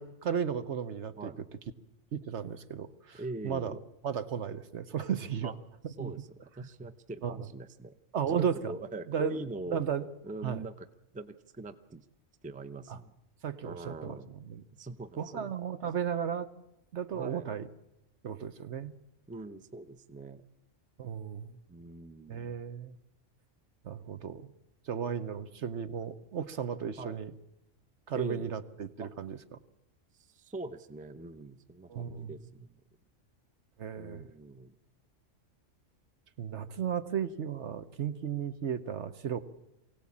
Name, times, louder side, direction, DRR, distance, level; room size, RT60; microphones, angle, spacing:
voice 1, 0.0-1.3 2.1-3.8 4.0-5.5 5.8-6.1 7.2-7.4 8.1-8.7 9.1-9.4 9.7-10.1 10.4-10.6 12.9-13.0 13.4-14.2 14.5-14.6 15.2-16.5 16.9-17.7 18.2-19.0 21.0-21.6 22.3-23.0 23.8-24.5 24.9-27.3 28.1-29.6 31.9-32.4 33.8-34.3 36.4-39.4, right 8 dB, 65° right, 11 dB, 1.3 m, -34 dB
voice 2, 3.1-3.8 5.4-5.5 5.9-8.0 8.4-9.8 10.2-10.9 11.1-12.0 12.4-13.1 13.6-14.3 14.8-15.5 17.1-17.5 19.3-20.4 21.7-22.6 27.0-27.2 28.1-28.5 29.0-29.1 30.1-32.8 34.0-34.7, right 2 dB, 10° right, 9 dB, 0.5 m, -43 dB
23.5 x 17.0 x 8.6 m, 0.93 s
omnidirectional pair, 1.3 m